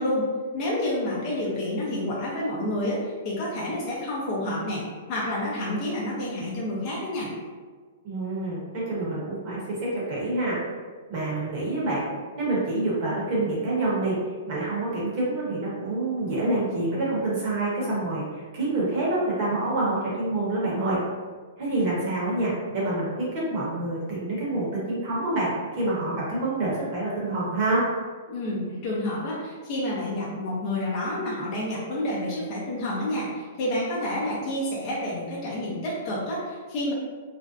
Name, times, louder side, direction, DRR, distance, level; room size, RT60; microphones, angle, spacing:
voice 1, 0.0-4.8 5.1-7.3 28.3-36.9, left 1 dB, 35° left, -6 dB, 0.6 m, -29 dB
voice 2, 8.0-10.6 11.1-12.0 12.4-14.2 14.5-21.0 21.6-27.8, right 2 dB, 40° right, -6 dB, 1.0 m, -27 dB
2.5 x 2.1 x 2.5 m, 1.5 s
hypercardioid pair, 155°, 0 cm